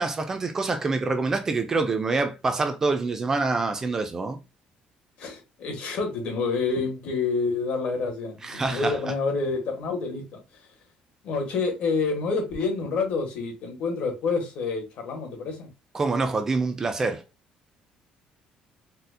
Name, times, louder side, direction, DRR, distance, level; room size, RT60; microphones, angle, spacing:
voice 1, 0.0-4.4 8.4-9.0 15.9-17.2, right 3 dB, 20° right, 0.3 m, -26 dB
voice 2, 5.2-10.2 11.2-15.7, left 4 dB, 55° left, 1.1 m, -28 dB
4.1 x 2.0 x 2.6 m
cardioid pair, 175°, 3 cm